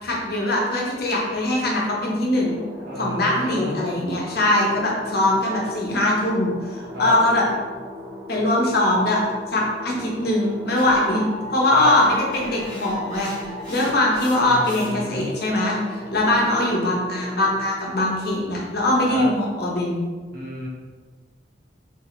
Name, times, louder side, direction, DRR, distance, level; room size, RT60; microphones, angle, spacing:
voice 1, 0.0-2.6 3.0-7.4 8.3-9.2 9.5-11.2 11.5-13.3 13.7-20.0, left 1 dB, 60° left, -3 dB, 1.0 m, -21 dB
sound 1, 2.3-17.7, left 1 dB, 10° right, 0.7 m, -38 dB
voice 2, 2.9-3.9 6.9-7.1 11.7-11.9 14.4-15.3 19.1-19.3 20.3-20.7, left 1 dB, 55° right, -5 dB, 1.3 m, -31 dB
sound 2, 10.8-15.2, equal, 30° left, 1.4 m, -38 dB
4.1 x 3.5 x 3.2 m, 1.4 s
head